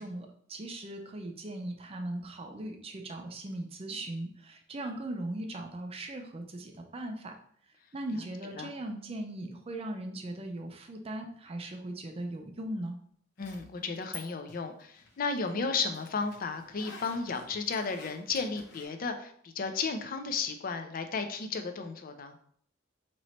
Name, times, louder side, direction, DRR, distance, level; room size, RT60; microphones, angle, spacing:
voice 1, 0.0-7.3 7.9-12.9, right 1 dB, 30° right, 4 dB, 0.5 m, -39 dB
Zipper (clothing), 13.4-14.2 14.5-18.9, left 4 dB, 65° left, 0.9 m, -49 dB
voice 2, 13.4-22.4, left 4 dB, 45° left, 7 dB, 0.5 m, -34 dB
3.1 x 3.0 x 4.2 m, 0.62 s
head